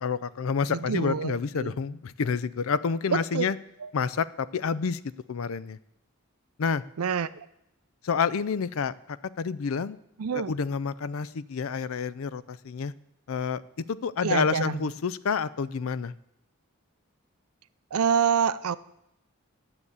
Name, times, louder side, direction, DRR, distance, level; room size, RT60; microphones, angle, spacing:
voice 1, 0.0-3.6 3.9-5.0 5.3-5.8 6.6-6.8 8.0-10.0 10.3-12.9 13.3-16.1, left 5 dB, 75° left, 17 dB, 0.5 m, -29 dB
voice 2, 0.7-1.7 3.1-3.5 3.8-3.9 7.0-7.5 10.2-10.5 14.2-14.9 17.9-18.8, right 7 dB, 90° right, 16 dB, 0.5 m, -27 dB
9.8 x 7.1 x 8.0 m, 0.82 s
head